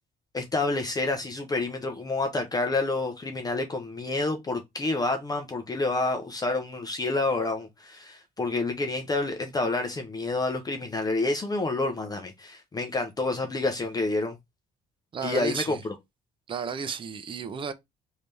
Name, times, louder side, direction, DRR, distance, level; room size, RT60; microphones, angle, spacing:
voice 1, 0.3-14.4 15.2-15.8, left 2 dB, 20° left, 0.7 m, -28 dB
voice 2, 15.1-15.8 16.5-17.7, right 6 dB, 30° right, 0.5 m, -33 dB
3.3 x 2.8 x 3.2 m
cardioid pair, 110°, 17 cm